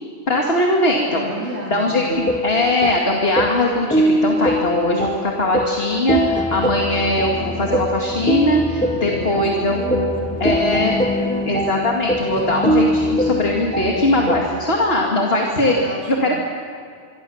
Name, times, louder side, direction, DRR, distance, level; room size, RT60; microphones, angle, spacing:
voice 1, 0.3-1.3 1.7-10.1 10.4-11.0 11.5-16.4, left 1 dB, 55° left, 0 dB, 2.5 m, -20 dB
voice 2, 1.1-2.2 4.9-5.1 8.9-11.5 15.4-16.4, right 1 dB, 60° right, -1 dB, 3.0 m, -32 dB
sound 1, 2.1-14.5, equal, 5° left, 1.4 m, -22 dB
25.5 x 24.0 x 7.2 m, 2.3 s
omnidirectional pair, 1.2 m